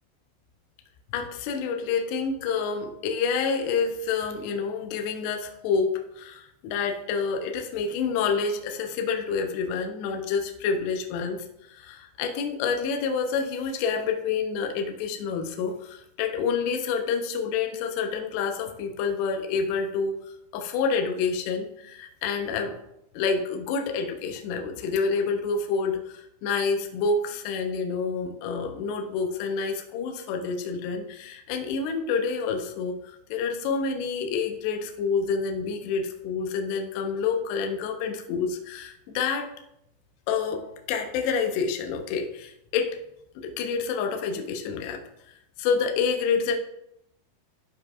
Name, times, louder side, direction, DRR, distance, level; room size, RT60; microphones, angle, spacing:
voice 1, 1.1-20.2 20.5-22.8 23.1-39.5 40.3-43.0 43.4-45.0 45.6-46.6, left 5 dB, 75° left, 4 dB, 2.6 m, -28 dB
13.0 x 4.6 x 2.5 m, 0.80 s
omnidirectional pair, 5.3 m